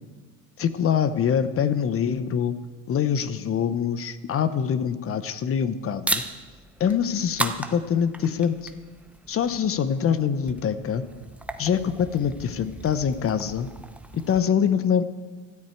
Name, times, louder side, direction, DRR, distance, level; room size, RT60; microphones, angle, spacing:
voice 1, 0.6-2.5 2.9-6.2 6.8-8.7 9.3-11.0 11.6-13.7 14.1-15.0, left 8 dB, 35° left, 13 dB, 0.9 m, -24 dB
sound 1, 6.0-14.4, right 1 dB, 5° right, 0.7 m, -36 dB
16.5 x 13.0 x 4.6 m, 1.4 s
cardioid pair, 120°, 39 cm